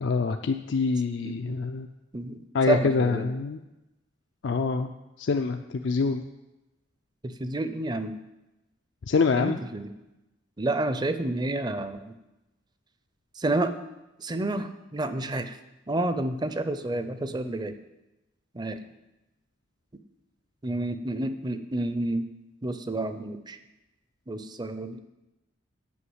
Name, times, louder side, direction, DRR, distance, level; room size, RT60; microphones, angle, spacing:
voice 1, 0.0-1.9 2.5-3.6 4.4-4.9 5.2-6.3 9.1-9.6, left 4 dB, 65° left, 6 dB, 0.4 m, -25 dB
voice 2, 1.2-1.6 2.1-2.4 2.7-3.3 7.2-8.2 9.4-9.9 10.6-12.1 13.4-13.7 14.2-15.6 15.9-17.7 18.5-18.8 20.6-22.3 22.6-23.6 24.3-25.0, right 2 dB, 20° right, 10 dB, 0.5 m, -29 dB
8.4 x 5.7 x 7.9 m, 1.0 s
head